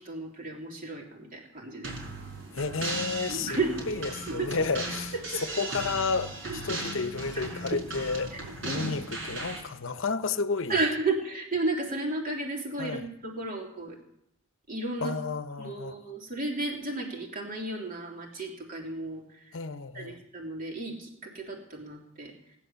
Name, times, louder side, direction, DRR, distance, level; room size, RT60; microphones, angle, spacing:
voice 1, 0.0-1.9 3.3-4.0 4.3-4.5 5.1-5.4 6.4-6.6 8.3-9.0 10.7-14.0 14.7-15.2 15.6-19.6 19.9-22.3, right 2 dB, 40° right, 2.9 m, -33 dB
sound 1, 1.8-9.6, right 2 dB, 65° right, 4.9 m, -37 dB
voice 2, 2.5-3.6 3.9-5.1 5.6-8.3 8.6-10.8 12.8-13.1 15.0-15.9 19.5-20.2, left 4 dB, 65° left, 0.8 m, -31 dB
18.0 x 11.0 x 6.9 m
head